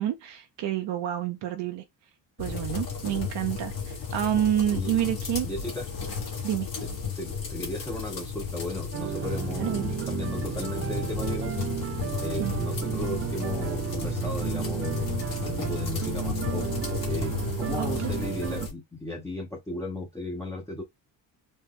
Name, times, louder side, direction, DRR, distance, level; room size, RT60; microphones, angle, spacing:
voice 1, 0.0-1.8 2.4-5.5 6.4-6.7 9.6-9.9 12.4-12.5 17.8-18.1, right 11 dB, 65° right, 0.8 m, -28 dB
sound 1, 2.4-18.7, left 6 dB, 50° left, 1.8 m, -33 dB
voice 2, 4.7-5.1 5.4-5.9 6.8-11.5 12.2-15.2 15.4-16.7 17.1-20.8, left 1 dB, 5° left, 0.8 m, -36 dB
sound 2, 8.9-18.7, right 10 dB, 35° right, 0.4 m, -33 dB
4.2 x 2.2 x 3.5 m
cardioid pair, 85°, 45 cm